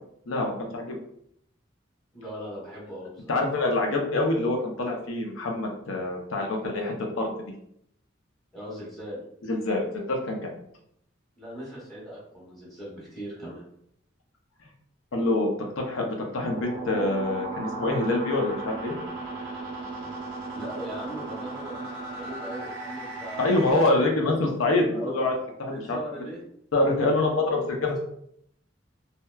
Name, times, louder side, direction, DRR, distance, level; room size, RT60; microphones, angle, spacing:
voice 1, 0.3-1.0 3.3-7.3 9.4-10.5 15.1-15.5 15.8-19.0 23.4-25.3 25.6-26.0 26.7-28.0, left 2 dB, 90° left, 1 dB, 0.6 m, -26 dB
voice 2, 2.1-3.4 8.5-9.2 11.4-13.6 20.5-23.6 23.9-24.4 24.9-25.3 25.6-26.4 27.2-28.0, equal, ahead, -7 dB, 1.0 m, -39 dB
sound 1, 16.4-23.7, right 2 dB, 85° right, 0.6 m, -36 dB
2.8 x 2.1 x 2.2 m, 0.71 s
head